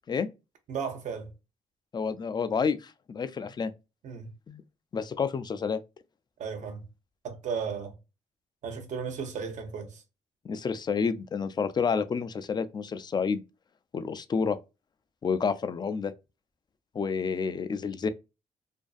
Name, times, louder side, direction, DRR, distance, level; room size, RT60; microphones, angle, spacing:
voice 1, 0.7-1.3 4.0-4.3 6.4-6.8 7.2-7.9 8.6-10.0, right 6 dB, 65° right, 0.7 m, -35 dB
voice 2, 1.9-3.7 4.5-4.6 4.9-5.8 10.4-13.4 13.9-14.6 15.2-16.1 16.9-18.1, left 5 dB, 30° left, 0.3 m, -29 dB
2.5 x 2.2 x 2.3 m
supercardioid pair, 60°, 13 cm